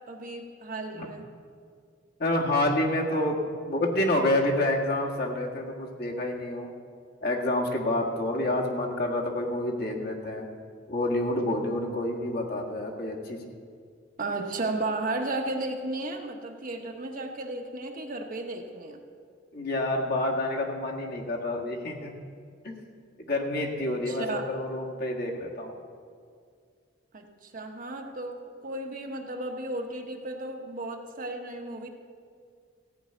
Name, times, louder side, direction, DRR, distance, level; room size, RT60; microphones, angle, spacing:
voice 1, 0.1-1.3 14.2-19.0 24.1-24.5 27.1-31.9, right 2 dB, 45° right, 3 dB, 1.1 m, -34 dB
voice 2, 2.2-3.4 3.6-6.7 7.2-10.5 10.9-13.5 19.5-22.1 22.6-22.7 23.3-25.8, left 1 dB, 55° left, -1 dB, 1.7 m, -28 dB
15.0 x 5.5 x 9.0 m, 2.2 s
head